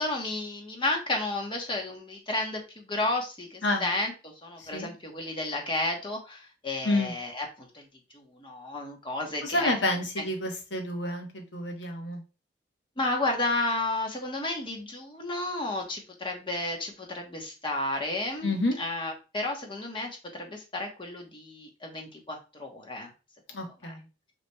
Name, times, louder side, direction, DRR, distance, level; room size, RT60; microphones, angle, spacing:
voice 1, 0.0-4.1 4.4-7.8 8.1-9.7 13.0-18.5 18.8-20.1 20.4-23.1 23.8-23.9, left 2 dB, 30° left, 2 dB, 1.1 m, -32 dB
voice 2, 4.6-4.9 6.8-7.1 9.4-12.2 18.4-18.8 23.5-24.0, left 2 dB, 85° left, 3 dB, 1.1 m, -29 dB
5.7 x 3.1 x 2.3 m, 0.31 s
head